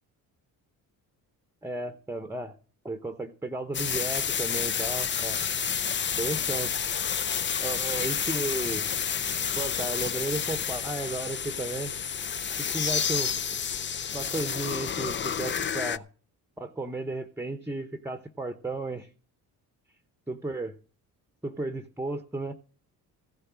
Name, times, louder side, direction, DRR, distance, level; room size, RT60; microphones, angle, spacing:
voice 1, 1.6-2.6 2.8-5.5 6.2-6.7 7.6-8.9 9.6-11.9 12.7-13.3 14.1-16.1 16.6-19.1 20.3-20.7 21.4-22.5, right 2 dB, 5° right, 9 dB, 0.9 m, -34 dB
sound 1, 3.7-16.0, left 7 dB, 30° left, 0.5 m, -30 dB
15.0 x 6.7 x 6.2 m, 0.42 s
supercardioid pair, 60°, 42 cm